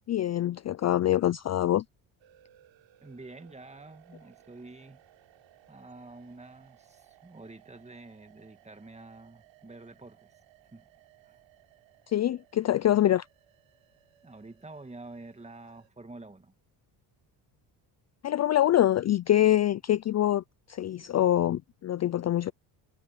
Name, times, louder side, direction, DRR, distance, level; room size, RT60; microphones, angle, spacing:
voice 1, 0.1-1.8 12.1-13.2 18.2-20.4 20.7-22.5, left 12 dB, 35° left, 0.5 m, -25 dB
sound 1, 2.2-15.9, right 13 dB, 70° right, 3.6 m, -61 dB
voice 2, 3.0-5.0 5.7-10.3 10.7-10.9 11.2-11.4 14.2-16.5, right 2 dB, 15° right, 2.0 m, -48 dB
cardioid pair, 90°, 47 cm